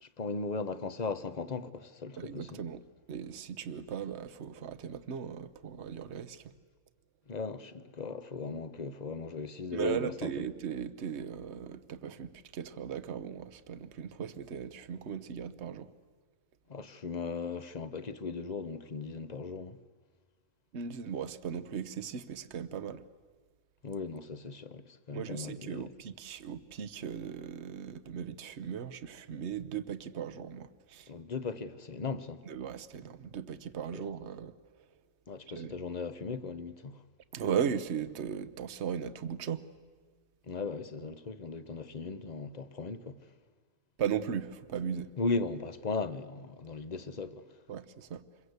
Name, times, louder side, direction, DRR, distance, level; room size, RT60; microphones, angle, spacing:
voice 1, 0.0-2.6 7.3-10.5 16.7-19.8 23.8-25.9 31.1-32.4 33.9-34.0 35.3-37.0 40.5-43.2 45.2-47.4, left 4 dB, 35° left, 0.8 m, -37 dB
voice 2, 2.2-2.8 3.1-6.5 9.7-15.9 20.7-23.0 25.1-31.1 32.4-34.6 35.5-35.7 37.3-39.7 44.0-45.1 47.7-48.2, right 8 dB, 55° right, 1.1 m, -37 dB
27.0 x 22.5 x 8.1 m
omnidirectional pair, 1.5 m